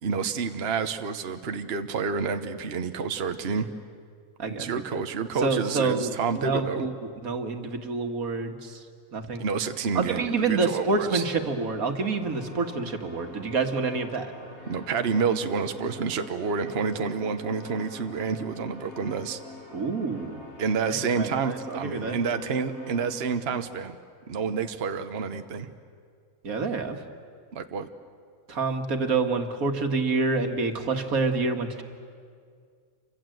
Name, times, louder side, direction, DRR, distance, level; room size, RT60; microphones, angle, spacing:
voice 1, 0.0-3.7 4.6-6.8 9.4-11.2 14.7-19.4 20.6-24.0 24.3-25.7 27.5-27.9, right 5 dB, 50° right, 8 dB, 1.2 m, -29 dB
voice 2, 5.4-6.9 7.2-8.8 9.1-9.4 10.0-14.3 19.7-20.4 20.9-22.2 26.4-27.0 28.5-31.8, right 4 dB, 85° right, 5 dB, 2.1 m, -27 dB
sound 1, 11.3-23.2, left 2 dB, 75° left, 6.1 m, -45 dB
29.0 x 24.5 x 7.8 m, 2.1 s
omnidirectional pair, 1.5 m